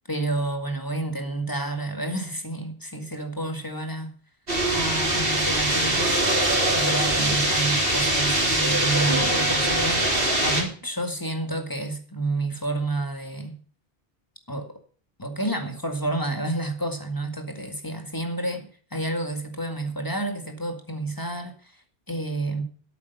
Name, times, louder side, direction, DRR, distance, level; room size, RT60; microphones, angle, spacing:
voice 1, 0.1-4.1 4.7-6.2 6.7-10.0 10.4-13.6 14.5-14.8 15.2-21.7 22.1-22.6, right 2 dB, 20° left, 2.0 m, -30 dB
sound 1, 4.5-10.6, right 1 dB, 65° right, 4.3 m, -22 dB
12.5 x 8.5 x 7.0 m
omnidirectional pair, 1.1 m